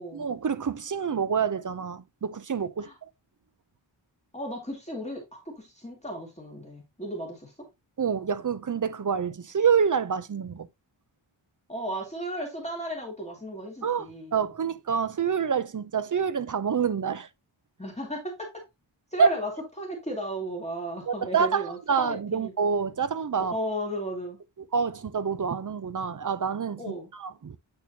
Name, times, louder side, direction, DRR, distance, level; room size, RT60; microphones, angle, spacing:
voice 1, 0.1-2.9 8.0-10.7 13.8-17.3 19.2-19.3 21.1-23.6 24.7-27.6, right 6 dB, 40° right, 0.6 m, -27 dB
voice 2, 4.3-7.5 11.7-14.4 17.8-18.6 19.1-19.5 19.8-22.5 23.5-24.4 26.8-27.1, right 1 dB, 15° left, 2.3 m, -35 dB
8.7 x 4.3 x 2.7 m
wide cardioid pair, 105°, 47 cm